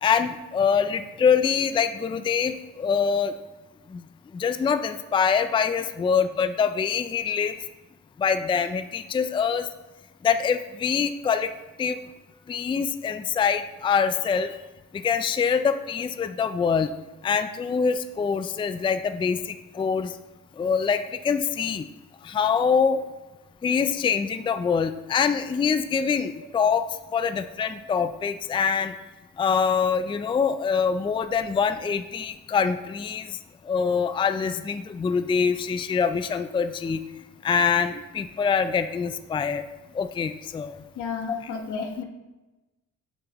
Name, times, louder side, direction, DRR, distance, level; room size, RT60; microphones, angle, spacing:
voice 1, 0.0-3.3 3.9-4.0 4.3-7.6 8.2-9.7 10.2-11.5 11.8-12.0 12.5-14.6 14.9-16.9 17.2-20.2 20.6-21.9 22.2-23.0 23.6-26.9 27.1-28.9 29.4-33.4 33.6-37.0 37.4-39.6 39.9-40.8 41.4-41.5, left 6 dB, 15° left, 9 dB, 0.3 m, -24 dB
voice 2, 41.0-42.0, left 5 dB, 80° left, 2 dB, 1.3 m, -32 dB
7.6 x 7.0 x 3.0 m, 1.1 s
cardioid pair, 90°, 30 cm